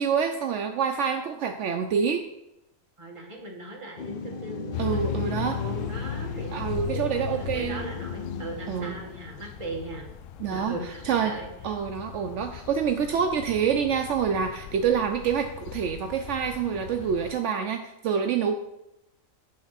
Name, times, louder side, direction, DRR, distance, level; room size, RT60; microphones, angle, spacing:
voice 1, 0.0-2.2 4.8-5.5 6.5-7.9 8.7-9.0 10.4-10.7 11.0-11.3 11.6-18.5, right 7 dB, 70° right, 5 dB, 0.9 m, -27 dB
voice 2, 3.0-10.1 10.5-11.5, right 2 dB, 25° right, 0 dB, 1.4 m, -39 dB
sound 1, 4.0-9.2, left 4 dB, 50° left, 0.8 m, -38 dB
sound 2, 4.7-17.3, left 9 dB, 80° left, 0.9 m, -37 dB
9.6 x 3.5 x 5.7 m, 0.87 s
omnidirectional pair, 1.3 m